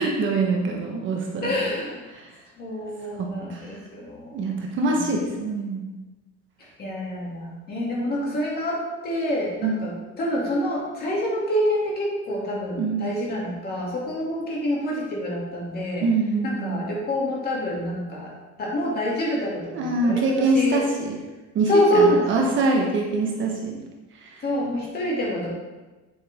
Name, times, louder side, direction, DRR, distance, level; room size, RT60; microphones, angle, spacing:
voice 1, 0.0-1.8 2.1-2.4 3.2-3.8 4.3-5.9 9.6-9.9 12.7-13.1 16.0-16.8 19.7-21.2 21.5-23.8 24.2-24.4, right 3 dB, 40° right, 0 dB, 1.4 m, -25 dB
voice 2, 1.4-2.0 2.6-4.4 6.8-9.9 10.2-16.1 16.4-18.3 18.6-20.2 20.5-20.8 21.7-22.3 24.4-25.5, equal, 35° left, -4 dB, 2.8 m, -26 dB
8.7 x 7.8 x 3.7 m, 1.2 s
cardioid pair, 160°, 29 cm